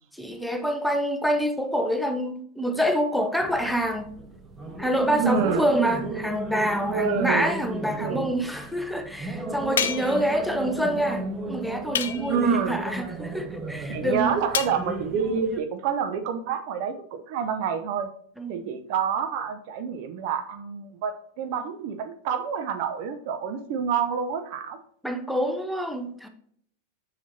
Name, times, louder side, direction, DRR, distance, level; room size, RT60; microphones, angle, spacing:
voice 1, 0.1-4.1 4.8-14.4 18.4-18.7 25.0-26.3, right 1 dB, ahead, 0.7 m, -26 dB
sound 1, 3.4-15.6, right 2 dB, 20° right, 1.0 m, -35 dB
voice 2, 5.2-5.7 6.9-7.5 8.0-8.3 12.3-12.8 13.9-18.1 18.5-24.8, right 6 dB, 45° right, 0.6 m, -28 dB
sound 2, 9.8-10.3 11.9-12.5 14.5-14.8, left 8 dB, 60° left, 0.5 m, -28 dB
7.0 x 5.9 x 2.7 m
figure-of-eight pair, 90°, 0 cm